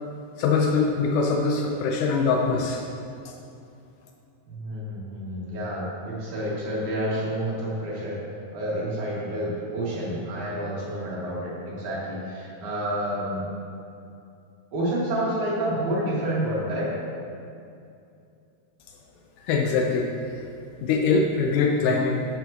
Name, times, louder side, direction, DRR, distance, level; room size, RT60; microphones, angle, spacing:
voice 1, 0.4-2.8 3.3-3.4 19.4-20.1 20.8-22.2, left 4 dB, 85° left, 1 dB, 2.2 m, -23 dB
voice 2, 4.5-8.2 8.5-13.5 14.7-16.9 21.8-21.9, right 1 dB, 70° right, -6 dB, 3.3 m, -29 dB
13.0 x 8.0 x 2.9 m, 2.6 s
omnidirectional pair, 3.6 m